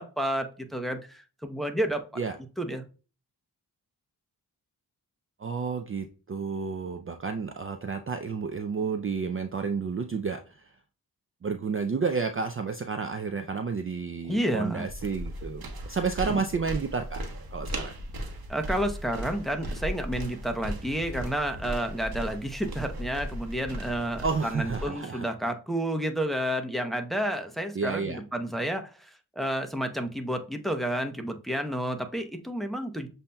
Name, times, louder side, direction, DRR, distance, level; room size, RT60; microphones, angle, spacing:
voice 1, 0.0-2.0 2.6-2.8 14.3-14.9 16.3-16.4 18.5-33.1, right 1 dB, ahead, 5 dB, 0.7 m, -30 dB
voice 2, 5.4-10.7 11.4-17.2 17.5-17.9 24.2-25.2 27.7-28.2, right 5 dB, 35° right, 6 dB, 0.4 m, -31 dB
sound 1, 14.9-24.9, equal, 60° right, 1.0 m, -37 dB
7.1 x 2.7 x 2.2 m, 0.34 s
cardioid pair, 60°, 41 cm